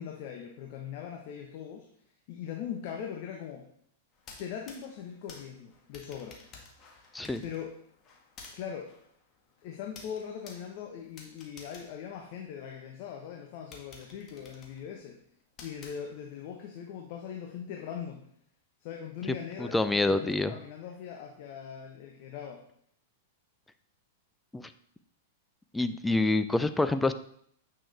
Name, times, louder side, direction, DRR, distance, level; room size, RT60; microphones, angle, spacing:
voice 1, 0.0-1.9 2.3-3.7 4.4-6.4 7.4-7.7 8.5-8.9 9.6-15.2 15.6-18.3 18.8-22.6, left 8 dB, 50° left, 2 dB, 1.2 m, -40 dB
sound 1, 4.1-12.9 13.3-13.4 13.7-16.5, left 4 dB, 30° left, 1.9 m, -53 dB
voice 2, 19.6-20.5 24.5-24.6 25.7-27.1, left 2 dB, 5° left, 11 dB, 0.5 m, -26 dB
8.9 x 6.3 x 3.5 m, 0.67 s
hypercardioid pair, 105°, 0 cm